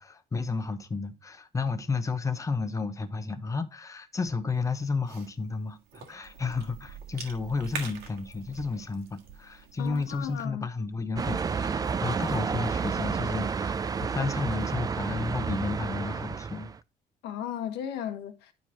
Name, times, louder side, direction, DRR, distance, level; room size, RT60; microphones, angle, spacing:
voice 1, 0.0-16.7, left 4 dB, 20° left, 0.8 m, -32 dB
Cough / Chewing mastication, 4.5-10.5, right 6 dB, 75° right, 1.7 m, -45 dB
voice 2, 9.8-10.7 17.2-18.5, left 10 dB, 90° left, 1.2 m, -35 dB
sound 1, 11.2-16.8, right 5 dB, 20° right, 0.4 m, -30 dB
10.5 x 4.6 x 2.8 m
cardioid pair, 110°, 17 cm